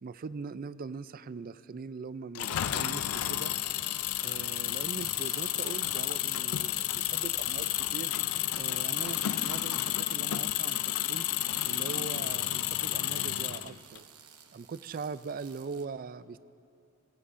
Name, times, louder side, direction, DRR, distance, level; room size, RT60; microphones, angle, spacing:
voice 1, 0.0-3.5 4.2-8.1 8.5-11.3 11.6-14.1 14.5-16.4, right 5 dB, 40° right, 15 dB, 0.3 m, -41 dB
Engine, 2.3-14.0, left 13 dB, 70° left, 0.4 m, -31 dB
sound 1, 4.7-8.4 8.7-15.8, right 9 dB, 80° right, 0.9 m, -54 dB
24.0 x 16.5 x 2.5 m, 2.6 s
head